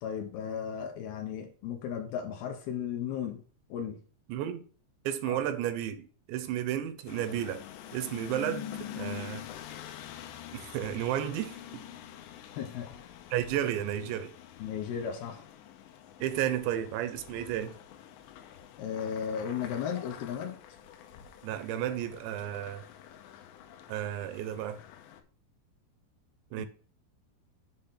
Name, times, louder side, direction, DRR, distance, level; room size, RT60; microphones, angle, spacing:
voice 1, 0.0-3.4 3.7-4.0 5.3-5.4 12.5-12.9 14.6-15.4 18.8-20.6 26.6-26.7, left 8 dB, 75° left, 2.6 m, -35 dB
voice 2, 4.3-4.6 5.0-7.6 7.9-9.4 10.5-11.8 13.3-14.3 16.2-17.8 21.4-22.9 23.9-24.8 26.5-26.7, right 11 dB, 80° right, 2.9 m, -33 dB
sound 1, 7.1-25.2, left 10 dB, 90° left, 2.9 m, -46 dB
7.8 x 3.6 x 5.7 m
omnidirectional pair, 5.1 m